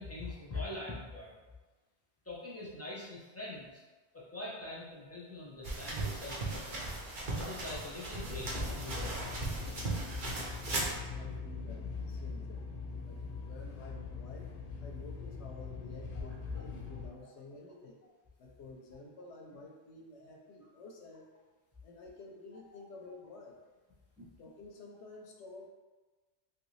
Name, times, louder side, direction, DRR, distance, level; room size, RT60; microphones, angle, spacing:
voice 1, 0.0-1.3 2.2-3.8 4.1-6.8 7.4-9.3 16.1-16.6 24.2-24.3, left 2 dB, 20° left, -6 dB, 0.5 m, -43 dB
sound 1, 5.6-11.0, right 2 dB, 50° right, 0.8 m, -37 dB
sound 2, 8.3-17.1, left 5 dB, 60° left, 0.6 m, -42 dB
voice 2, 10.8-12.7 13.0-18.0 18.4-21.3 21.8-23.6 24.4-25.7, left 2 dB, 90° left, 0 dB, 0.9 m, -51 dB
3.0 x 2.6 x 3.1 m, 1.3 s
omnidirectional pair, 1.1 m